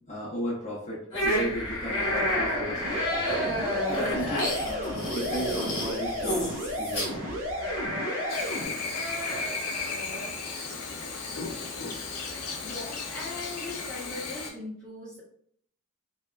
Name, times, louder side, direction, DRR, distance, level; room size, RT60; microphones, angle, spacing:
voice 1, 0.0-3.3 3.9-7.2, equal, 30° left, -9 dB, 0.8 m, -35 dB
sound 1, 1.1-10.3, equal, 60° left, 1.1 m, -31 dB
sound 2, 2.8-8.6, equal, 60° right, 0.6 m, -33 dB
Chirp tweet / Buzz, 8.3-14.5, left 4 dB, 90° left, 0.5 m, -35 dB
voice 2, 12.6-15.2, left 2 dB, 5° left, -10 dB, 1.1 m, -39 dB
2.7 x 2.2 x 2.3 m, 0.64 s
head